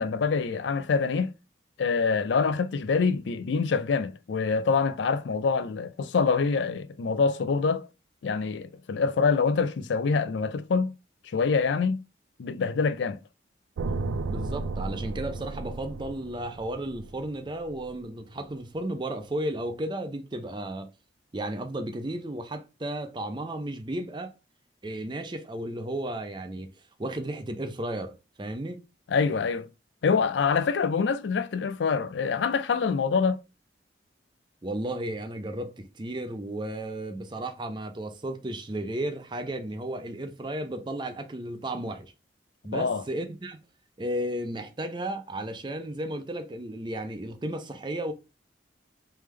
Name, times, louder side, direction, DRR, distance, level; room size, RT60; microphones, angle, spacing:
voice 1, 0.0-1.3 1.8-7.9 8.2-10.9 11.3-12.0 12.4-13.2 29.1-29.7 30.0-33.4 42.7-43.0, left 5 dB, 70° left, 0.4 m, -25 dB
sound 1, 13.8-17.9, right 3 dB, 90° right, 0.4 m, -34 dB
voice 2, 14.3-20.9 21.3-24.3 24.8-26.7 27.0-28.8 34.6-42.1 42.6-43.6 44.0-48.1, right 1 dB, 25° right, 0.5 m, -34 dB
3.4 x 3.4 x 3.2 m
head